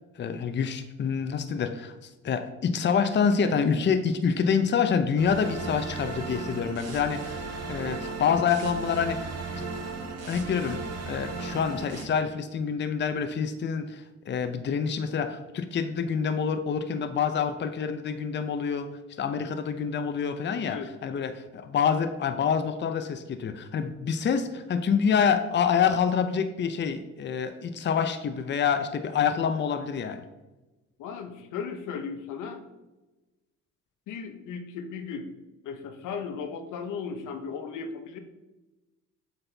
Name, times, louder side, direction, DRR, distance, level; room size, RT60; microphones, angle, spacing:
voice 1, 0.2-1.9 2.2-9.3 9.6-9.7 10.2-30.2, left 6 dB, 35° left, 9 dB, 0.6 m, -27 dB
sound 1, 5.2-12.0, right 3 dB, 55° right, 1.2 m, -36 dB
voice 2, 31.0-32.6 34.1-35.3 35.6-38.2, left 5 dB, 85° left, 7 dB, 0.8 m, -36 dB
8.0 x 4.2 x 3.3 m, 1.1 s
cardioid pair, 90°, 30 cm